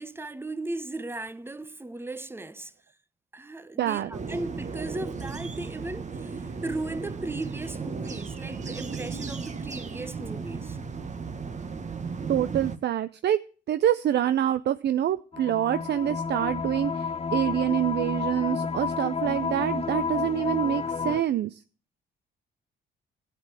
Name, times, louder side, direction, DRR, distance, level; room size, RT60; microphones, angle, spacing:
voice 1, 0.0-2.7 3.3-10.8, right 2 dB, 10° right, 0.9 m, -36 dB
voice 2, 3.8-4.1 12.3-13.4 13.7-21.6, right 11 dB, 60° right, 0.6 m, -26 dB
sound 1, 4.1-12.8, right 5 dB, 35° right, 1.5 m, -35 dB
sound 2, 15.3-21.2, left 5 dB, 30° left, 0.9 m, -30 dB
13.5 x 8.4 x 7.5 m
cardioid pair, 90°, 20 cm